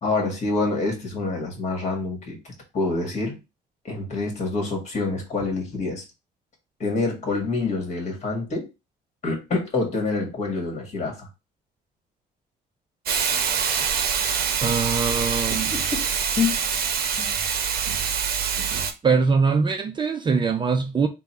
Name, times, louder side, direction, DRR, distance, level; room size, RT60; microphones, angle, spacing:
voice 1, 0.0-2.4 2.7-3.4 3.9-6.0 6.8-8.7 9.2-11.3 15.5-16.1 16.4-16.7 17.2-17.3, left 3 dB, 45° left, 1.7 m, -26 dB
Hiss, 13.1-18.9, right 7 dB, 65° right, 0.7 m, -25 dB
voice 2, 14.6-15.7 19.0-21.1, right 5 dB, 30° right, 0.5 m, -22 dB
3.8 x 2.2 x 4.3 m
cardioid pair, 110°, 17 cm